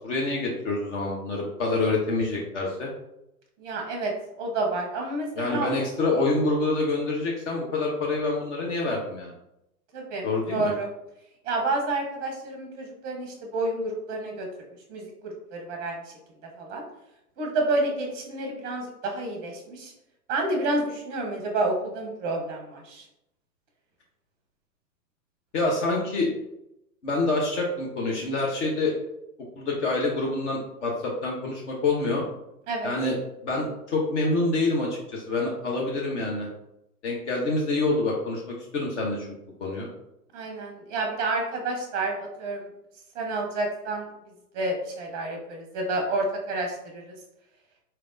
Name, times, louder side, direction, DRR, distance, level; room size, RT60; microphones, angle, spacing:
voice 1, 0.0-2.9 5.3-9.3 10.2-10.7 25.5-26.3 27.0-29.0 29.6-32.2 32.8-33.2 33.4-36.5 37.0-39.3 39.6-39.9, left 2 dB, 45° left, -2 dB, 1.0 m, -26 dB
voice 2, 3.6-4.1 4.4-5.7 9.9-10.9 11.4-14.5 14.9-16.1 16.6-16.8 17.4-19.9 20.3-23.0 32.7-32.9 40.3-42.7 43.1-44.0 44.5-47.2, right 2 dB, 20° right, 1 dB, 0.7 m, -29 dB
4.3 x 3.3 x 2.6 m, 0.84 s
hypercardioid pair, 115°, 48 cm